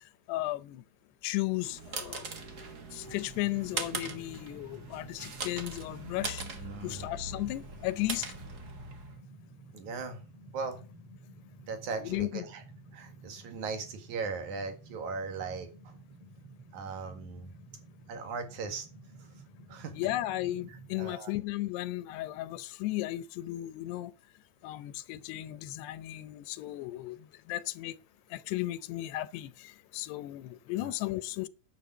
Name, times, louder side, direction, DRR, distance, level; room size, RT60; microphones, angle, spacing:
voice 1, 0.3-0.8 1.2-2.3 2.9-6.4 6.8-8.3 12.0-12.5 19.9-24.1 24.6-28.0 28.3-31.5, left 16 dB, 85° left, 2.8 m, -35 dB
sound 1, 1.4-9.2, right 4 dB, 80° right, 0.9 m, -41 dB
sound 2, 3.0-21.1, right 1 dB, 40° right, 3.0 m, -52 dB
voice 2, 6.6-7.1 9.7-10.2 10.5-10.8 11.7-12.6 12.9-15.9 16.7-17.5 18.1-18.9 19.7-20.0 21.0-21.3 30.8-30.9, right 4 dB, 55° right, 3.1 m, -38 dB
10.5 x 7.5 x 7.1 m
omnidirectional pair, 4.7 m